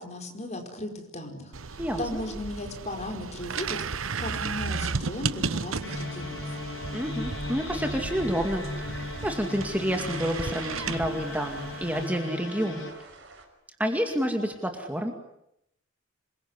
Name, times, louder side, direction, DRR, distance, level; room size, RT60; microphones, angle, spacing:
voice 1, 0.0-3.8 4.2-6.6, left 1 dB, 35° left, 4 dB, 4.8 m, -36 dB
sound 1, 1.5-12.1, right 5 dB, 80° right, 1.0 m, -35 dB
sound 2, 5.8-12.9, left 2 dB, 65° left, 7.7 m, -37 dB
voice 2, 6.9-13.0 13.8-15.1, equal, 5° right, 4 dB, 2.2 m, -29 dB
sound 3, 8.4-13.5, right 3 dB, 55° right, 5.8 m, -50 dB
27.0 x 22.5 x 9.8 m, 0.81 s
head